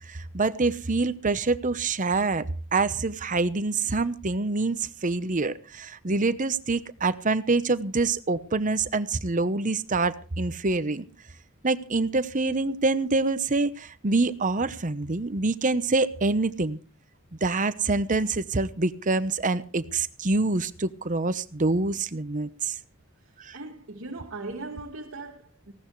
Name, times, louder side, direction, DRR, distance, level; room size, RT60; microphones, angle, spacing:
voice 1, 0.1-2.4 2.7-11.1 11.6-16.8 17.4-22.8 23.4-23.5, right 3 dB, 35° right, 0.9 m, -26 dB
voice 2, 23.2-25.7, right 3 dB, 60° right, 2.1 m, -39 dB
19.0 x 17.0 x 3.2 m
head